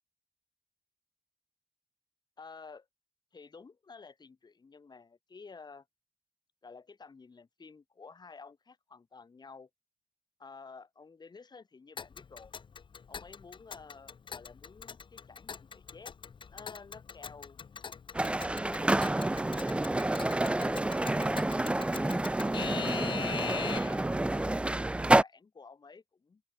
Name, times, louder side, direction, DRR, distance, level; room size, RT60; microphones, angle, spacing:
voice 1, 2.4-2.9 3.3-5.9 6.6-9.7 10.4-12.6 13.1-16.1 16.5-17.6 18.2-19.7 20.4-21.4 21.8-26.4, left 4 dB, 55° left, 5.4 m, -52 dB
Alarm / Clock, 12.0-24.1, left 6 dB, 70° left, 2.6 m, -42 dB
sound 1, 18.1-25.2, right 2 dB, 15° right, 0.4 m, -28 dB
open air
cardioid pair, 65°, 9 cm